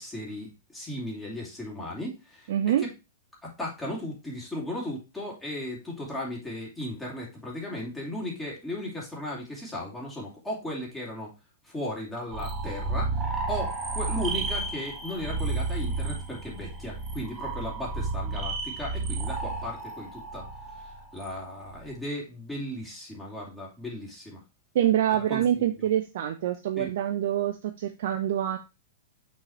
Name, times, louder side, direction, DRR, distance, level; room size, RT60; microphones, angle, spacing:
voice 1, 0.0-2.7 3.4-11.3 11.6-20.5 20.7-24.4 25.3-25.6 26.8-26.9, left 1 dB, 10° left, -3 dB, 2.9 m, -36 dB
voice 2, 2.5-2.8 24.7-28.6, right 11 dB, 60° right, 6 dB, 0.7 m, -26 dB
sound 1, 12.3-21.9, right 3 dB, 20° right, 1.5 m, -32 dB
6.4 x 4.0 x 4.3 m, 0.27 s
hypercardioid pair, 115°, 0 cm